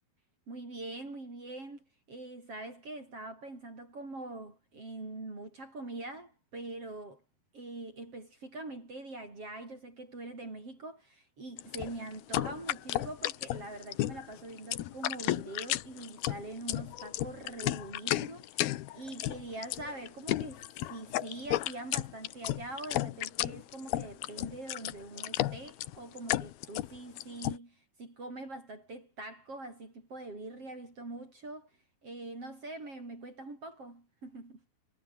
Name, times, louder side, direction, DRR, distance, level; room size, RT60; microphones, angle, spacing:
voice 1, 0.5-7.2 7.5-31.7 32.0-34.6, right 2 dB, 35° right, 7.7 m, -44 dB
sound 1, 11.6-27.6, left 15 dB, 90° left, 3.0 m, -33 dB
omnidirectional pair, 4.3 m